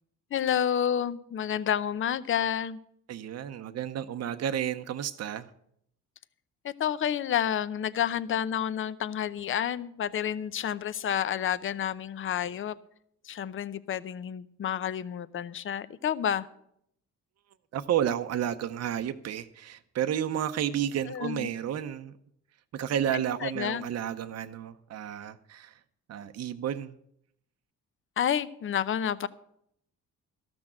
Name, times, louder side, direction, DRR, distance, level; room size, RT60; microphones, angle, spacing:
voice 1, 0.3-2.8 6.6-12.8 13.2-16.5 21.1-21.5 23.1-23.9 28.2-29.3, left 9 dB, 45° left, 15 dB, 0.6 m, -30 dB
voice 2, 3.1-5.5 17.7-22.1 22.7-25.8 26.1-26.9, right 10 dB, 55° right, 8 dB, 0.7 m, -31 dB
13.5 x 6.2 x 8.7 m, 0.72 s
cardioid pair, 90°, 30 cm